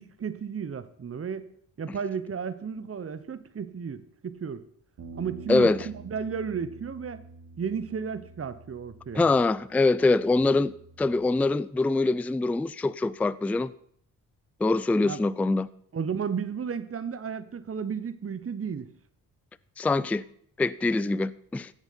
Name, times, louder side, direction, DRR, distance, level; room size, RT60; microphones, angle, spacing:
voice 1, 0.0-1.5 1.8-4.6 5.1-7.2 7.6-9.3 15.0-15.2 15.9-18.9, right 6 dB, 30° right, 1.0 m, -33 dB
sound 1, 5.0-11.2, right 4 dB, 55° right, 3.1 m, -48 dB
voice 2, 5.5-5.9 9.1-13.7 14.6-15.7 19.8-20.2 20.6-21.7, left 3 dB, 5° left, 0.4 m, -24 dB
15.5 x 7.2 x 5.8 m
hypercardioid pair, 45°, 43 cm